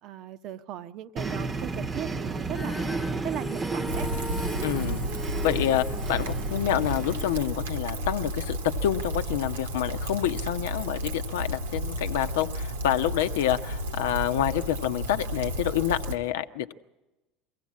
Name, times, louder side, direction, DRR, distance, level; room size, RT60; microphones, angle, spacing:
voice 1, 0.0-2.8 3.2-4.1 5.9-6.1, right 11 dB, 55° right, 12 dB, 0.8 m, -38 dB
sound 1, 1.2-7.6, right 3 dB, 30° right, 0.9 m, -33 dB
Female singing, 2.5-8.8, left 3 dB, 20° left, 0.8 m, -41 dB
Rain, 3.9-16.2, right 1 dB, 85° right, 1.2 m, -32 dB
voice 2, 4.6-5.0 5.4-16.7, left 11 dB, 75° left, 9 dB, 0.8 m, -28 dB
23.0 x 16.0 x 7.5 m, 1.1 s
hypercardioid pair, 75°, 0 cm